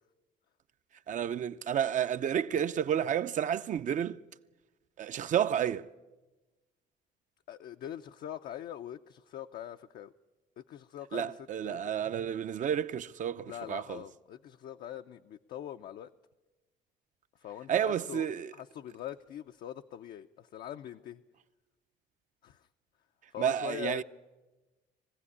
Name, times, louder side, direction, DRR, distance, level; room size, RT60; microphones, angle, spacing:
voice 1, 1.1-4.2 5.0-5.9 11.1-14.0 17.7-18.5 23.4-24.0, right 9 dB, 50° right, 0.6 m, -31 dB
voice 2, 7.5-10.1 10.6-11.9 13.5-16.1 17.4-18.3 18.5-21.2 22.4-22.7 23.3-24.0, left 11 dB, 65° left, 0.6 m, -43 dB
21.5 x 15.5 x 9.8 m
cardioid pair, 110°, 17 cm